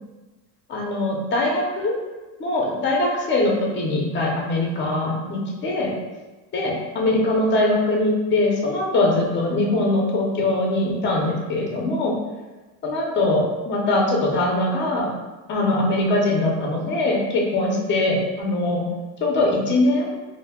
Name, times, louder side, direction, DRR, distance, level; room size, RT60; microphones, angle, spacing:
voice 1, 0.7-1.9 2.4-5.9 6.5-12.1 12.8-15.1 15.5-18.9 19.2-20.1, left 2 dB, 30° left, -1 dB, 0.6 m, -22 dB
2.2 x 2.1 x 3.4 m, 1.2 s
supercardioid pair, 125°, 41 cm